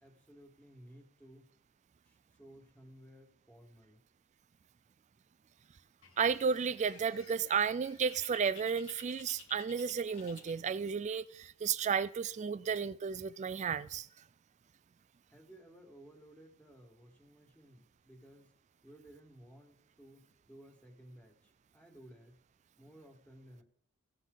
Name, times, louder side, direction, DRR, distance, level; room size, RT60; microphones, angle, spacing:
voice 1, 0.0-1.4 2.1-4.0 12.6-12.7 15.3-18.5 18.8-22.4 22.8-23.6, right 1 dB, 5° left, 1.8 m, -57 dB
Bird, 6.0-11.1, left 6 dB, 70° left, 1.1 m, -56 dB
voice 2, 6.2-14.1, right 6 dB, 35° right, 0.3 m, -33 dB
16.5 x 6.3 x 3.9 m
head